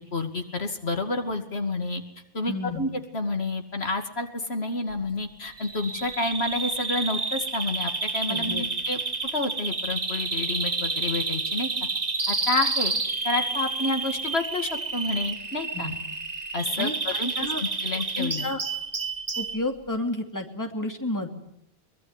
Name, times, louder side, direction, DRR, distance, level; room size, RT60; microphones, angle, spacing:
voice 1, 0.1-2.0 2.3-9.0 9.3-11.7 12.3-12.9 13.2-15.9 16.5-17.3 17.6-18.5, left 2 dB, 80° left, 5 dB, 2.7 m, -29 dB
voice 2, 2.5-2.8 8.3-8.6 15.7-16.0 16.8-17.6 18.1-18.6 19.4-21.3, left 2 dB, 15° left, 4 dB, 2.8 m, -31 dB
Bird vocalization bird call bird song, 5.6-19.6, right 3 dB, 40° right, 1.5 m, -30 dB
23.0 x 22.0 x 9.8 m, 0.76 s
omnidirectional pair, 1.1 m